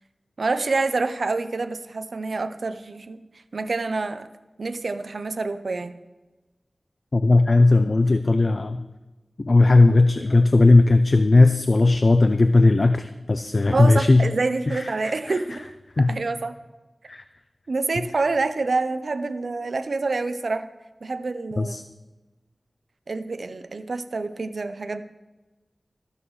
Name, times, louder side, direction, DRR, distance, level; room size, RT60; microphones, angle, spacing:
voice 1, 0.4-3.2 3.5-4.3 4.6-6.0 13.7-15.6 16.0-16.5 17.7-20.7 21.0-21.8 23.1-25.0, right 3 dB, 75° right, 10 dB, 0.6 m, -27 dB
voice 2, 7.1-8.8 9.4-14.3 14.7-15.4 16.0-16.1 17.1-17.2 21.6-21.8, left 2 dB, 50° left, 10 dB, 0.4 m, -17 dB
13.5 x 12.5 x 3.2 m, 1.1 s
wide cardioid pair, 75°, 0 cm